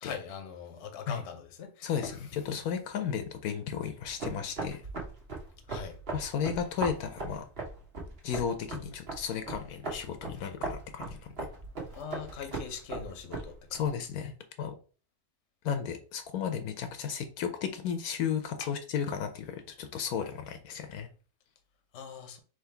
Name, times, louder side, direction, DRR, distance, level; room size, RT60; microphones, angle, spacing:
voice 1, 0.0-2.2 5.7-6.0 11.9-13.5 18.6-18.7 21.9-22.4, left 6 dB, 55° left, 1.0 m, -41 dB
voice 2, 1.8-4.8 6.1-7.4 8.2-11.5 13.7-14.3 14.6-14.7 15.6-21.1, left 7 dB, 75° left, 1.1 m, -34 dB
sound 1, 4.0-13.9, right 3 dB, 45° right, 1.3 m, -39 dB
3.7 x 3.1 x 4.4 m
omnidirectional pair, 1.6 m